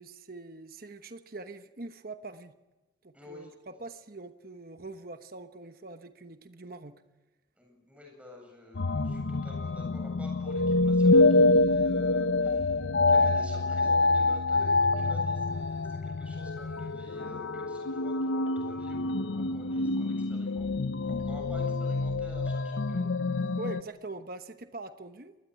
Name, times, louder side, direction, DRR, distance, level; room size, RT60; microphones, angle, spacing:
voice 1, 0.0-2.5 3.0-6.9 23.6-25.4, right 2 dB, 50° right, 8 dB, 1.1 m, -43 dB
voice 2, 3.1-3.5 7.5-20.7 21.0-23.5, left 2 dB, 5° right, 1 dB, 7.9 m, -50 dB
sound 1, 8.7-23.8, left 2 dB, 85° left, 0.8 m, -26 dB
23.0 x 19.5 x 9.5 m, 1.1 s
head